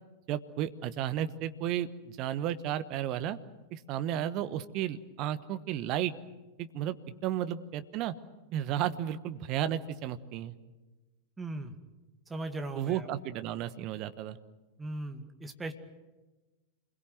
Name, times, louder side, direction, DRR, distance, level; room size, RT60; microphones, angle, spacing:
voice 1, 0.3-3.4 3.7-6.1 6.6-7.0 7.2-8.1 8.5-10.5 12.8-14.4, right 11 dB, 40° right, 12 dB, 1.3 m, -33 dB
voice 2, 11.4-11.8 12.3-13.1 14.8-15.7, right 2 dB, 15° right, 7 dB, 2.1 m, -38 dB
28.0 x 22.0 x 7.9 m, 1.2 s
figure-of-eight pair, 90°, 0 cm